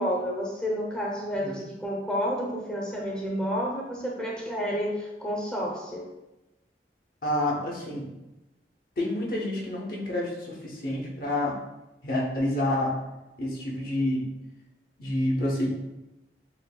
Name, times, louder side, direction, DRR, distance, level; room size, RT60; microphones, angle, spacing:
voice 1, 0.0-6.0, equal, 5° left, -3 dB, 0.7 m, -30 dB
voice 2, 7.2-8.1 9.0-11.6 12.0-12.9 13.4-14.2 15.0-15.7, left 1 dB, 55° left, -3 dB, 0.7 m, -28 dB
7.0 x 2.5 x 2.2 m, 0.97 s
head